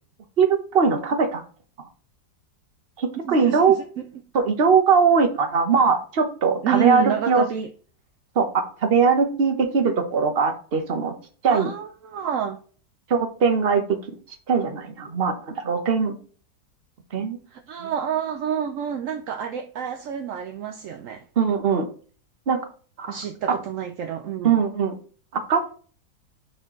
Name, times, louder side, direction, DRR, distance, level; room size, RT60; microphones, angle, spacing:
voice 1, 0.4-1.4 3.0-3.7 4.3-7.4 8.3-11.1 11.4-11.7 13.1-13.8 14.5-16.1 17.1-17.4 17.8-17.9 21.4-21.9 22.5-22.6 23.0-23.2 24.4-24.9 25.5-25.8, right 5 dB, 40° right, 1.0 m, -20 dB
voice 2, 3.2-4.1 6.6-7.7 11.5-12.6 17.5-21.2 23.1-24.6, right 9 dB, 70° right, 0.8 m, -29 dB
9.9 x 4.4 x 3.1 m
omnidirectional pair, 1.8 m